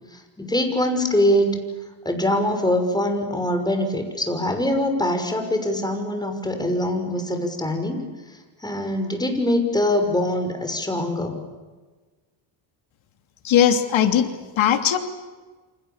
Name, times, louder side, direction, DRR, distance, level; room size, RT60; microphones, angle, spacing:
voice 1, 0.1-1.5 2.0-8.0 8.6-11.4, left 1 dB, 10° left, 5 dB, 6.1 m, -23 dB
voice 2, 13.4-15.0, left 9 dB, 80° left, 7 dB, 3.1 m, -19 dB
29.0 x 26.5 x 7.3 m, 1.3 s
cardioid pair, 110°, 46 cm